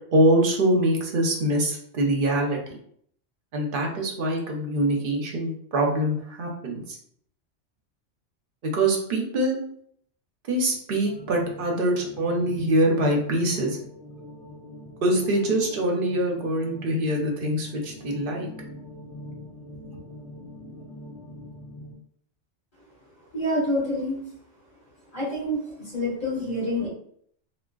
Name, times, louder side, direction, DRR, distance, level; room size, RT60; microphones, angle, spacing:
voice 1, 0.1-2.6 3.5-7.0 8.6-9.6 10.5-13.8 15.0-18.5 19.9-20.0, right 1 dB, 55° right, 0 dB, 0.8 m, -24 dB
sound 1, 11.0-21.9, left 1 dB, 80° left, 0.9 m, -44 dB
voice 2, 23.3-24.2 25.1-26.9, left 1 dB, 45° left, -7 dB, 1.7 m, -27 dB
3.5 x 2.2 x 2.3 m, 0.65 s
omnidirectional pair, 1.2 m